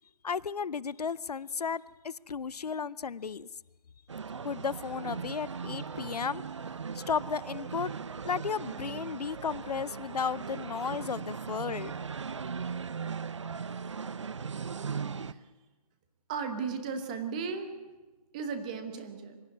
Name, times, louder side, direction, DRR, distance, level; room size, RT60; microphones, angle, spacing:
voice 1, 0.2-3.5 4.4-6.4 6.9-7.9 8.2-11.9, left 6 dB, 75° left, 0.6 m, -34 dB
sound 1, 4.1-15.3, right 6 dB, 50° right, 0.7 m, -38 dB
voice 2, 16.3-17.7 18.3-19.4, right 5 dB, 10° right, 1.0 m, -35 dB
24.0 x 12.0 x 9.6 m
hypercardioid pair, 170°, 20 cm